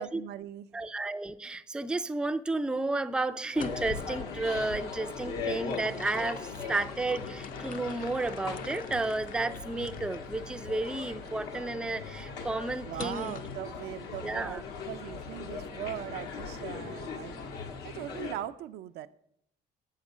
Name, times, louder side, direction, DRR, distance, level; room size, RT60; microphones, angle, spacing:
voice 1, 0.0-0.7 12.8-17.4 17.8-19.1, right 12 dB, 75° right, 0.5 m, -40 dB
voice 2, 0.7-13.4 14.2-14.6, right 2 dB, 5° right, 0.4 m, -32 dB
sound 1, 3.4-4.1 5.4-10.3 10.9-11.0 13.0-13.6, left 7 dB, 55° left, 0.6 m, -46 dB
sound 2, 3.5-18.3, left 5 dB, 85° left, 1.4 m, -39 dB
7.8 x 6.5 x 6.1 m
cardioid pair, 110°, 17 cm